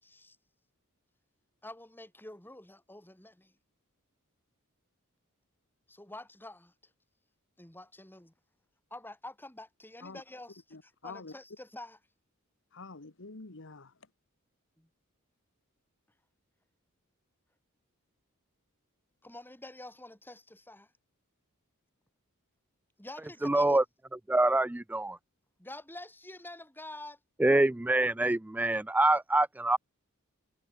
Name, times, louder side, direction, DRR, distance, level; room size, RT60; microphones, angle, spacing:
voice 1, 0.0-0.4 1.6-3.5 5.9-6.7 7.6-8.3 8.9-12.0 14.8-14.9 19.2-20.9 23.0-23.8 25.6-27.2, left 1 dB, 10° left, 5.2 m, -47 dB
voice 2, 10.7-11.3 12.7-13.9, left 3 dB, 60° left, 1.6 m, -46 dB
voice 3, 23.4-23.8 24.3-25.2 27.4-29.8, right 2 dB, 5° right, 0.3 m, -25 dB
head